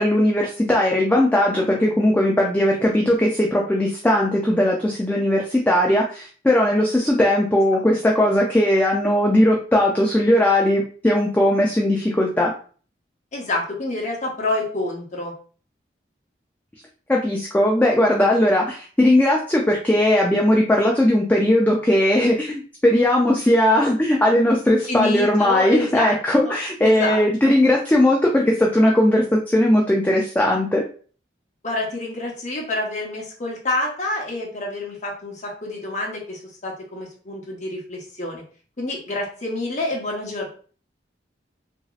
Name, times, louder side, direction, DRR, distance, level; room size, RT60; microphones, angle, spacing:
voice 1, 0.0-12.5 17.1-30.8, left 1 dB, 10° left, -1 dB, 0.3 m, -18 dB
voice 2, 13.3-15.3 24.9-26.6 26.8-27.5 31.6-38.4 38.8-40.5, left 2 dB, 45° left, -3 dB, 1.0 m, -28 dB
2.9 x 2.7 x 2.3 m, 0.41 s
head